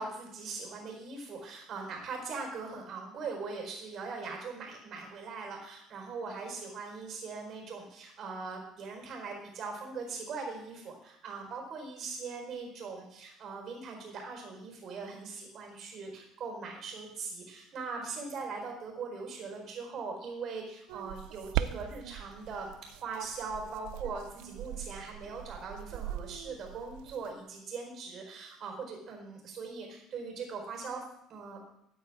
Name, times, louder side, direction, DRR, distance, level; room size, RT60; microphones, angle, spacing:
voice 1, 0.0-22.7 23.0-31.0 31.3-31.6, right 4 dB, 50° right, 1 dB, 4.6 m, -41 dB
sound 1, 20.9-27.3, right 12 dB, 85° right, 0.5 m, -39 dB
14.5 x 9.1 x 3.7 m, 0.78 s
cardioid pair, 105°, 0 cm